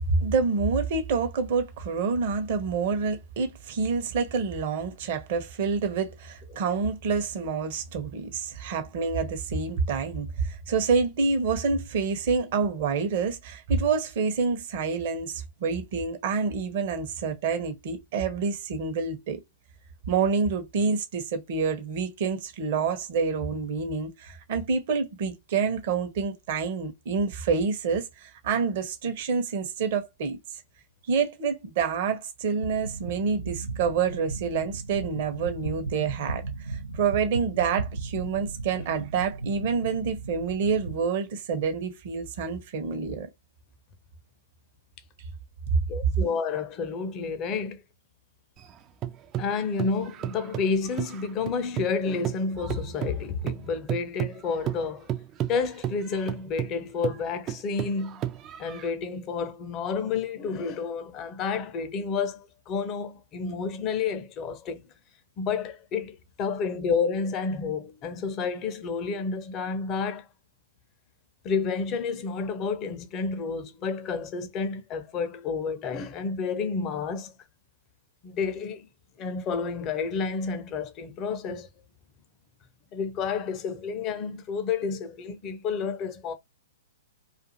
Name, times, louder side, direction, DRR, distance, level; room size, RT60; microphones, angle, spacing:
voice 1, 0.1-19.4 20.1-30.4 31.1-43.3 45.7-45.8, right 5 dB, 50° right, 0.8 m, -27 dB
sound 1, 32.6-41.0, right 3 dB, 85° right, 0.6 m, -36 dB
voice 2, 45.9-47.8 49.4-55.1 55.5-58.2 58.6-64.9 65.4-70.3 71.4-77.3 78.2-78.9 79.2-81.7 82.9-86.3, left 5 dB, 30° left, 0.6 m, -30 dB
sound 2, 48.6-52.0 52.2-58.9, right 11 dB, 25° right, 0.4 m, -33 dB
2.5 x 2.4 x 2.7 m
figure-of-eight pair, 115°, 0 cm